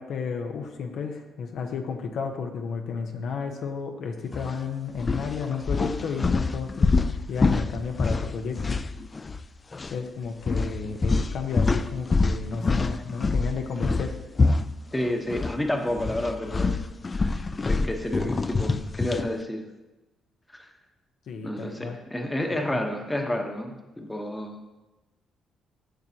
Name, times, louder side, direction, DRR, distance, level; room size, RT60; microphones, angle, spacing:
voice 1, 0.0-6.9 7.3-8.7 9.9-14.1 21.3-22.0 22.7-22.8, left 5 dB, 70° left, 4 dB, 0.8 m, -32 dB
sound 1, 4.3-4.5 5.0-9.5 9.7-9.9 10.5-15.6 15.9-19.3, left 3 dB, 30° left, 0.3 m, -26 dB
voice 2, 14.9-16.8 17.1-17.4 17.6-19.7 20.5-20.7 21.4-24.6, left 1 dB, 10° left, 3 dB, 1.0 m, -30 dB
11.5 x 6.2 x 2.8 m, 1.1 s
cardioid pair, 90°, 0 cm